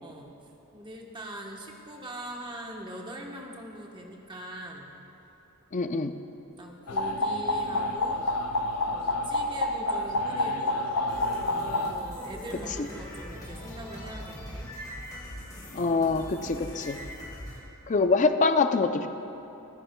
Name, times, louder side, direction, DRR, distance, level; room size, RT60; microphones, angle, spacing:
voice 1, 0.0-4.9 5.7-6.3 6.6-8.3 8.8-10.8 11.8-14.7, right 1 dB, 20° right, 0 dB, 1.0 m, -42 dB
voice 2, 5.7-6.1 15.7-17.0 17.9-19.1, left 4 dB, 35° left, 9 dB, 0.4 m, -24 dB
sound 1, 6.9-11.9, left 2 dB, 85° left, 0.6 m, -28 dB
sound 2, 11.1-17.6, equal, 15° left, 3.0 m, -41 dB
25.5 x 9.8 x 2.2 m, 3.0 s
head